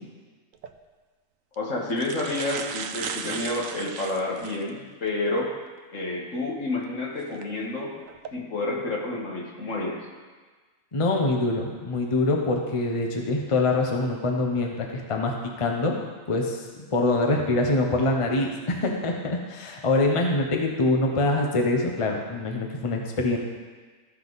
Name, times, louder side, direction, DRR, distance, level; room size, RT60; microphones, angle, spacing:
sound 1, 0.5-0.7 1.5-1.6 1.9-4.7 5.3-5.4 7.2-7.4 8.0-8.3, right 7 dB, 85° right, 1.0 m, -36 dB
voice 1, 1.6-5.5 5.9-7.9 8.3-10.0, left 2 dB, 75° left, -2 dB, 1.9 m, -29 dB
voice 2, 10.9-16.0 16.3-16.7 16.9-23.4, left 2 dB, 30° left, 1 dB, 0.9 m, -24 dB
14.0 x 5.7 x 4.0 m, 1.4 s
omnidirectional pair, 1.3 m